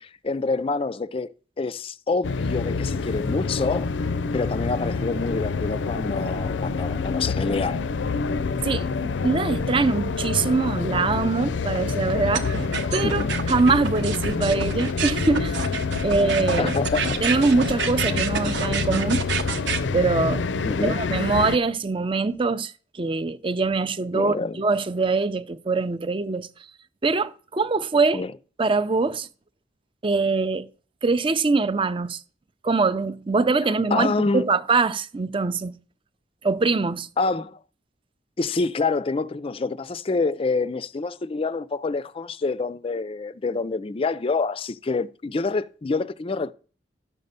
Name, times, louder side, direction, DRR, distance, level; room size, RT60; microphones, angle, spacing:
voice 1, 0.0-4.0 4.3-7.8 13.0-13.3 16.6-17.2 20.6-21.0 24.1-24.6 28.1-28.3 33.9-34.5 37.2-37.6 38.4-46.5, left 3 dB, 30° left, 0.4 m, -27 dB
sound 1, 2.2-21.6, left 4 dB, 90° left, 0.5 m, -27 dB
voice 2, 8.6-12.5 12.9-15.6 16.0-16.7 17.2-19.3 19.9-20.5 20.8-26.5 27.0-28.3 28.6-29.3 30.0-30.7 31.0-32.2 32.6-35.7 36.4-37.1, right 3 dB, 30° right, 0.5 m, -23 dB
sound 2, 12.3-19.8, right 6 dB, 75° right, 1.0 m, -29 dB
11.5 x 5.4 x 6.7 m
head